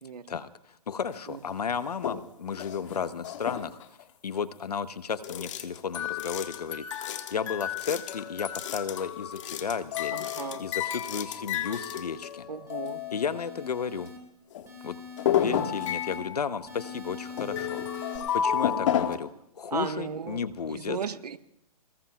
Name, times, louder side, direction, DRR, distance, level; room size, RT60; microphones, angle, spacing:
voice 1, 0.3-3.8 4.2-10.3 10.6-12.5 13.1-14.1 14.8-15.0 15.3-21.0, left 6 dB, 80° left, 13 dB, 1.0 m, -33 dB
sound 1, 1.1-1.2 1.8-2.2 2.5-4.0 5.2-13.7 14.1-14.2 14.5-14.7 15.2-19.2, left 9 dB, 50° left, 1.5 m, -32 dB
voice 2, 10.1-10.6 12.5-13.0 15.3-15.7 19.7-20.4 20.7-21.4, right 6 dB, 75° right, 9 dB, 1.3 m, -35 dB
sound 2, 11.1-12.2 12.7-14.2 14.7-16.2 16.7-18.2, left 5 dB, 15° right, 4.7 m, -43 dB
27.5 x 20.5 x 2.3 m, 0.76 s
hypercardioid pair, 135°, 20 cm